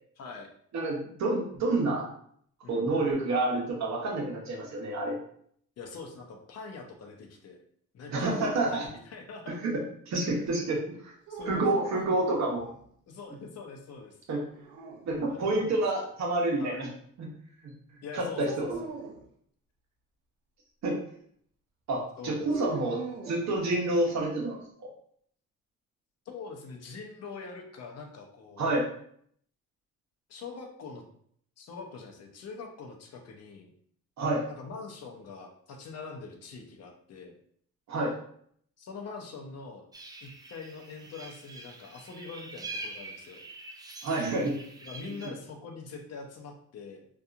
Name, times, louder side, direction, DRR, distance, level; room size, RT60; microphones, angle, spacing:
voice 1, 0.2-0.5 2.6-2.9 5.8-7.6 7.9-9.6 11.3-12.1 13.1-14.2 15.3-15.8 16.6-16.9 18.0-18.9 22.2-22.5 26.3-28.7 30.3-31.0 31.6-33.7 34.5-37.4 38.8-39.8 40.2-43.4 44.8-47.1, left 4 dB, 55° left, 2 dB, 0.6 m, -43 dB
voice 2, 0.7-2.1 2.7-5.2 8.1-8.9 9.5-11.1 11.5-12.6 14.3-14.4 15.1-16.9 17.2-17.3 18.1-18.8 20.8-21.0 21.9-23.0 23.2-24.9 28.6-28.9 34.2-34.4 37.9-38.1 44.0-44.5, right 2 dB, 65° right, -2 dB, 0.9 m, -28 dB
sound 1, 11.3-12.8 14.5-15.6 18.5-19.3 22.5-24.1, right 4 dB, 85° right, 0.6 m, -42 dB
sound 2, 39.9-45.3, right 2 dB, 15° right, 0.3 m, -44 dB
2.7 x 2.4 x 2.4 m, 0.64 s
cardioid pair, 90°, 30 cm